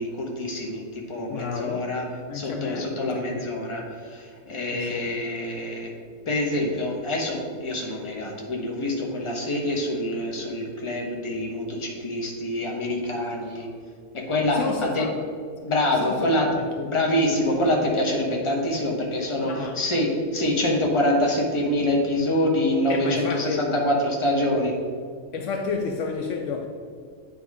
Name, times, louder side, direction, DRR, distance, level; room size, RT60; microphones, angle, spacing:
voice 1, 0.0-2.0 2.3-5.9 6.3-13.7 14.1-15.1 15.6-16.5 16.8-24.7, left 1 dB, 25° left, 1.0 m, -25 dB
voice 2, 1.3-1.9 2.3-3.5 4.7-5.1 14.5-15.1 16.0-16.9 19.4-19.8 22.9-23.7 25.3-26.7, left 5 dB, 70° left, 0.9 m, -31 dB
8.5 x 3.5 x 4.7 m
omnidirectional pair, 1.4 m